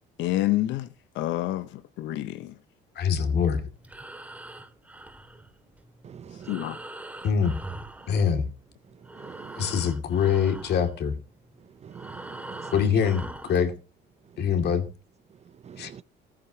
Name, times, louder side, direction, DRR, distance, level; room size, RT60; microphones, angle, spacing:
voice 1, 0.2-0.9 1.2-1.7 2.0-2.5 6.5-6.8, left 15 dB, 85° left, 0.8 m, -27 dB
voice 2, 3.0-3.6 7.2-7.5 8.1-8.5 9.6-11.1 12.7-13.7 14.4-14.9 15.8-15.9, left 7 dB, 60° left, 2.4 m, -24 dB
Breathing, 3.7-8.7 9.0-13.7, right 2 dB, 10° right, 2.1 m, -43 dB
voice 3, 6.0-6.7 9.2-9.7 11.8-12.7 15.7-16.0, right 8 dB, 35° right, 0.5 m, -44 dB
15.5 x 13.5 x 2.8 m
cardioid pair, 110°, 19 cm